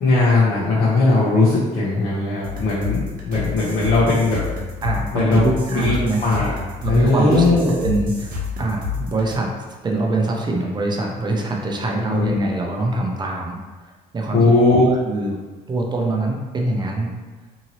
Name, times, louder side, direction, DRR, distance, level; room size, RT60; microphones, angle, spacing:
voice 1, 0.0-4.4 5.1-5.4 5.7-6.5 6.9-7.8 12.1-12.3 14.3-14.9, left 3 dB, 55° left, -8 dB, 0.8 m, -18 dB
sound 1, 2.4-9.4, left 5 dB, 55° right, 0.8 m, -29 dB
voice 2, 4.8-6.2 6.8-9.5 9.8-13.6 14.1-14.5 15.1-15.4 15.7-17.1, right 2 dB, 25° right, 0 dB, 0.6 m, -23 dB
2.8 x 2.6 x 2.9 m, 1.3 s
cardioid pair, 110°, 17 cm